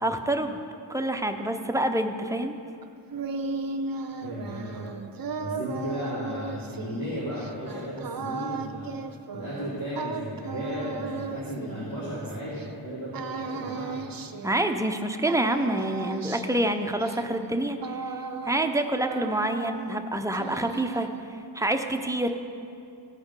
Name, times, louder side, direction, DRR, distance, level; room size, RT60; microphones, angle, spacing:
voice 1, 0.0-0.6 0.9-2.5 14.4-21.1 21.5-22.3, right 1 dB, 5° right, 5 dB, 0.6 m, -27 dB
sound 1, 2.8-12.7 13.1-15.0 15.3-18.8 19.0-20.0 20.3-21.3, right 4 dB, 50° right, 0.6 m, -36 dB
voice 2, 4.2-4.9 5.4-8.9 9.3-14.0, equal, 70° left, -10 dB, 2.7 m, -35 dB
15.5 x 5.1 x 5.3 m, 2.6 s
wide cardioid pair, 90°, 45 cm